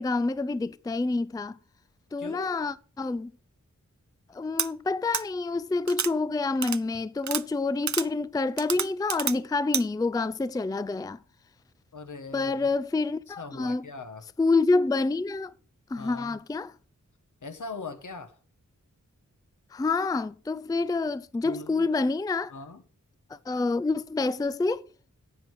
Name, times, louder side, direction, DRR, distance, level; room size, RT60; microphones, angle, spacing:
voice 1, 0.0-1.6 2.1-3.3 4.3-11.2 12.3-13.8 14.4-15.5 15.9-16.7 19.7-22.5 23.3-24.8, left 3 dB, 10° left, 0.4 m, -27 dB
voice 2, 2.2-2.5 11.9-12.7 13.4-14.3 16.0-16.4 17.4-18.4 21.4-21.9 22.5-22.8, left 3 dB, 70° left, 1.2 m, -40 dB
sound 1, 4.6-4.7 5.1-5.2 5.9-6.1 6.6-6.8 7.2-7.4 7.9-8.1 8.6-9.4 9.7-9.8, right 8 dB, 65° right, 0.6 m, -29 dB
10.0 x 7.6 x 4.7 m
cardioid pair, 40°, 32 cm